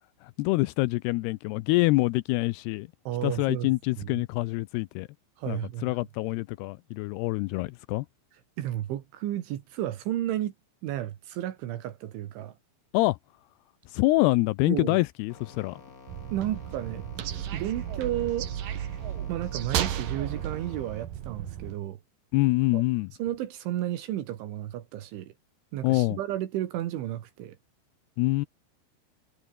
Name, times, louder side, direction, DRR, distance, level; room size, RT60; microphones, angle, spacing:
voice 1, 0.2-2.9 3.2-5.1 5.5-8.1 12.9-13.2 13.9-15.8 22.3-23.1 25.8-26.2 28.2-28.5, left 21 dB, 90° left, 2.3 m, -26 dB
voice 2, 3.1-3.7 4.0-4.1 5.4-6.0 8.6-10.5 10.8-12.6 14.7-15.0 16.3-17.1 17.5-18.5 19.3-22.0 22.7-22.8 23.2-25.3 25.7-27.6, right 13 dB, 80° right, 4.2 m, -32 dB
sound 1, 15.3-21.1, left 4 dB, 25° left, 2.0 m, -50 dB
sound 2, 16.1-21.8, right 10 dB, 55° right, 3.0 m, -33 dB
omnidirectional pair, 5.4 m